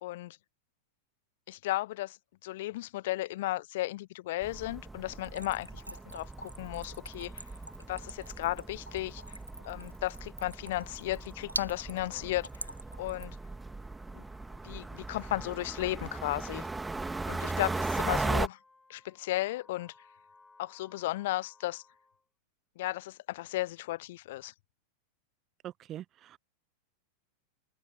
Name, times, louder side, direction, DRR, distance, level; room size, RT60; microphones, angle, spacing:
voice 1, 0.0-0.4 1.5-2.2 2.4-7.4 7.9-9.2 9.7-12.7 13.0-13.4 14.1-14.2 14.6-16.7 17.3-18.6 18.9-19.9 20.6-21.8 22.8-24.5, left 17 dB, 55° left, 0.5 m, -35 dB
Wind instrument woodwind instrument, 4.2-22.3, left 3 dB, 10° left, 6.0 m, -62 dB
sound 1, 4.4-18.5, right 3 dB, 10° right, 2.2 m, -38 dB
Splash splatter / Trickle dribble, 5.1-13.5, right 2 dB, 85° right, 2.3 m, -44 dB
voice 2, 25.6-26.4, right 12 dB, 30° right, 0.5 m, -43 dB
open air
figure-of-eight pair, 90°, 0 cm